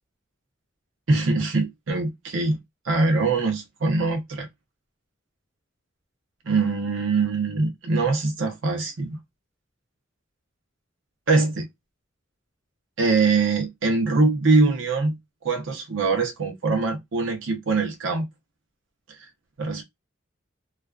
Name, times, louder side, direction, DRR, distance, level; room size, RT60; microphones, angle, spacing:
voice 1, 1.1-4.5 6.4-9.2 11.3-11.7 13.0-18.3 19.1-19.2 19.6-19.8, right 3 dB, 80° right, 0.6 m, -23 dB
2.4 x 2.2 x 2.3 m
head